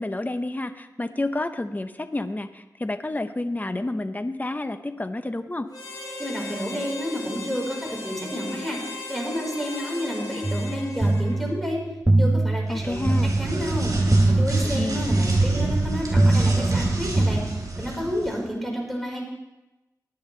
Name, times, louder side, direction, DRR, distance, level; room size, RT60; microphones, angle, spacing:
voice 1, 0.0-5.7 12.7-13.3 14.8-15.0, left 2 dB, 25° left, 9 dB, 0.9 m, -29 dB
Harmonica, 5.7-11.7, left 2 dB, 70° left, 2.9 m, -37 dB
voice 2, 6.2-7.8 8.0-8.8 9.1-11.8 12.2-13.0 13.4-13.9 14.3-17.4 17.8-19.2, equal, ahead, -1 dB, 4.7 m, -30 dB
sound 1, 10.4-17.3, right 2 dB, 20° right, 0.6 m, -23 dB
sound 2, 12.7-18.4, right 2 dB, 60° right, 4.4 m, -26 dB
19.5 x 10.5 x 3.3 m, 0.99 s
cardioid pair, 55°, 7 cm